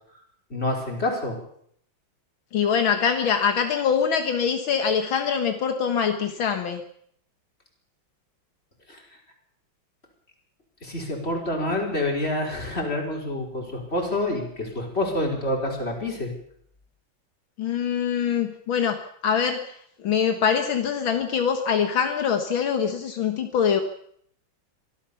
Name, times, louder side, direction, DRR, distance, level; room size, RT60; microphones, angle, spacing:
voice 1, 0.5-1.3 8.9-9.0 10.8-16.3, left 1 dB, 30° left, 0 dB, 5.2 m, -27 dB
voice 2, 2.5-6.8 17.6-19.7 20.0-23.8, left 7 dB, 75° left, 6 dB, 2.2 m, -24 dB
24.0 x 16.0 x 7.1 m, 0.67 s
omnidirectional pair, 2.2 m